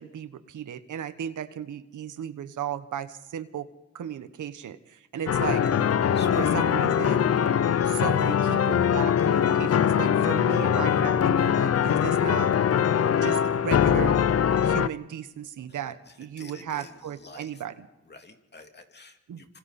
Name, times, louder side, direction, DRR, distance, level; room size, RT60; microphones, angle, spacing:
voice 1, 0.0-3.7 3.9-5.6 6.4-7.3 7.8-12.5 13.2-14.2 14.6-17.9 19.3-19.4, right 9 dB, 90° right, 12 dB, 1.2 m, -35 dB
sound 1, 5.3-14.9, left 8 dB, 55° left, 0.7 m, -22 dB
voice 2, 6.1-6.7 16.1-17.6 18.0-19.6, left 3 dB, 35° left, 4 dB, 2.8 m, -48 dB
26.5 x 26.0 x 4.3 m, 0.99 s
cardioid pair, 90°, 30 cm